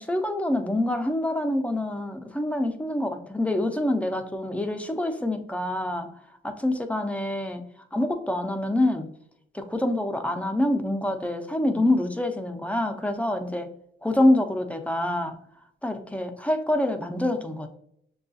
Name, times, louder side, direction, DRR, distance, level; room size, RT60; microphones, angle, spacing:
voice 1, 0.0-6.1 6.4-7.6 7.9-9.1 9.5-13.7 14.0-15.4 15.8-17.7, left 1 dB, 5° left, 6 dB, 0.5 m, -26 dB
6.4 x 2.3 x 2.6 m, 0.72 s
cardioid pair, 90°, 20 cm